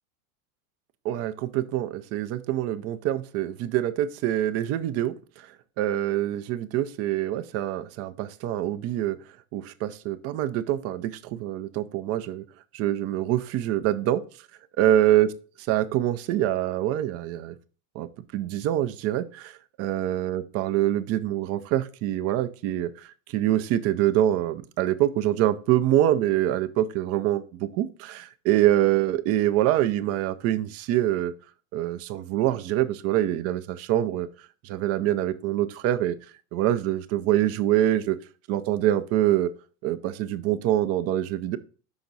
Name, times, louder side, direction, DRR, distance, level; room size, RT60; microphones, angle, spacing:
voice 1, 1.0-5.1 5.8-9.2 9.5-12.4 12.7-14.2 14.8-15.3 15.7-17.5 18.0-22.9 23.3-31.3 31.7-34.3 34.6-36.2 36.5-38.2 38.5-39.5 39.8-41.6, right 13 dB, 35° right, 11 dB, 0.5 m, -25 dB
5.9 x 5.0 x 4.0 m, 0.37 s
supercardioid pair, 125°, 43 cm